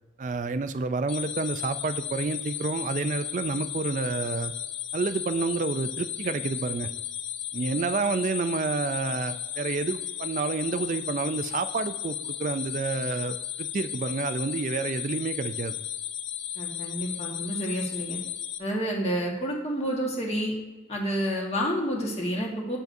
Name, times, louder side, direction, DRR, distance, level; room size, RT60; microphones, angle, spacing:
voice 1, 0.2-4.5 4.9-6.9 7.5-15.7, right 4 dB, 40° right, 11 dB, 0.3 m, -29 dB
sound 1, 1.1-18.6, left 10 dB, 80° left, 0.6 m, -35 dB
voice 2, 16.5-18.2 18.6-20.5 20.9-22.8, equal, 35° left, -1 dB, 1.4 m, -29 dB
7.7 x 7.1 x 2.6 m, 1.3 s
head